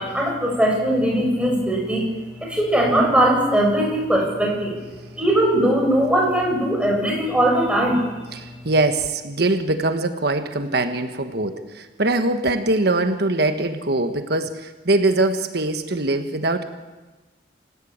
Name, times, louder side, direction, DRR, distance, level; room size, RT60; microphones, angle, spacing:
voice 1, 0.0-2.1 2.4-4.8 5.2-8.0, right 1 dB, 5° right, -1 dB, 7.0 m, -20 dB
voice 2, 8.3-16.6, right 2 dB, 60° right, 8 dB, 1.4 m, -22 dB
28.0 x 16.0 x 8.8 m, 1.2 s
head